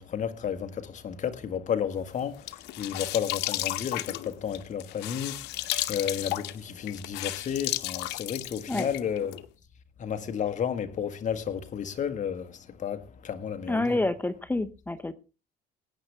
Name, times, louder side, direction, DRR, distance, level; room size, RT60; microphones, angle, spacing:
voice 1, 0.0-5.4 5.9-9.4 10.0-12.5 12.8-14.0, left 8 dB, 45° left, 1.5 m, -32 dB
sound 1, 2.2-9.5, left 17 dB, 90° left, 0.8 m, -34 dB
voice 2, 13.7-15.1, left 2 dB, 10° left, 0.8 m, -28 dB
19.5 x 9.5 x 3.4 m
cardioid pair, 110°, 17 cm